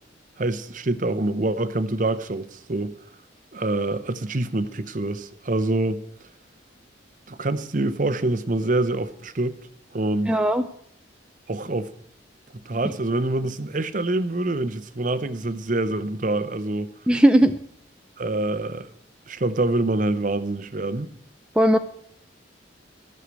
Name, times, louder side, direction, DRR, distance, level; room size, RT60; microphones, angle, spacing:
voice 1, 0.4-2.9 3.5-6.0 7.3-9.6 9.9-10.4 11.5-11.9 12.6-16.9 18.2-18.9 19.3-21.1, right 2 dB, 40° right, 0.7 m, -25 dB
voice 2, 10.3-10.7 17.1-17.5 21.6-21.8, right 1 dB, 5° right, 0.4 m, -17 dB
14.5 x 6.6 x 8.2 m
head